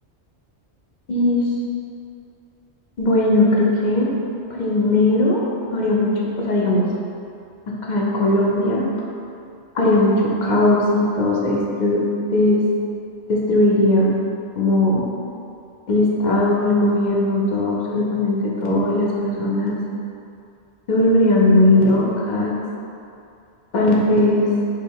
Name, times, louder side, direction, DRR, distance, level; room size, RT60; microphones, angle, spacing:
voice 1, 1.1-1.4 3.0-4.1 4.5-5.4 5.7-6.8 7.7-8.8 9.7-12.0 12.3-12.6 13.3-14.1 14.6-15.0 15.9-19.8 20.9-22.5 23.7-24.5, left 1 dB, 50° left, -3 dB, 0.6 m, -18 dB
3.2 x 3.0 x 4.6 m, 2.5 s
omnidirectional pair, 1.2 m